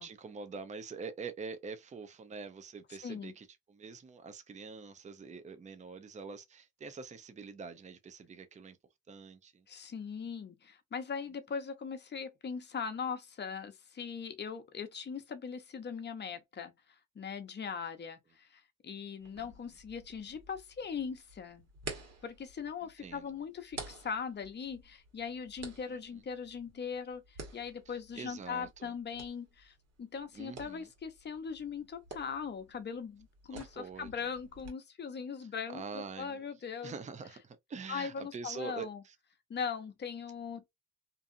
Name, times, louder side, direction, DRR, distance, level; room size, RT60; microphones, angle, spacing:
voice 1, 0.0-8.8 9.1-9.7 19.3-19.5 23.0-23.3 25.9-26.2 27.9-28.9 30.3-30.9 33.5-34.1 35.7-36.5 36.8-39.2, right 5 dB, 25° right, 0.5 m, -45 dB
voice 2, 3.0-3.3 9.7-16.7 17.1-21.7 22.2-36.9 37.9-39.0 39.5-40.7, left 6 dB, 35° left, 0.8 m, -40 dB
sound 1, 19.2-34.7, right 3 dB, 55° right, 1.3 m, -51 dB
2.6 x 2.4 x 2.5 m
cardioid pair, 90°, 30 cm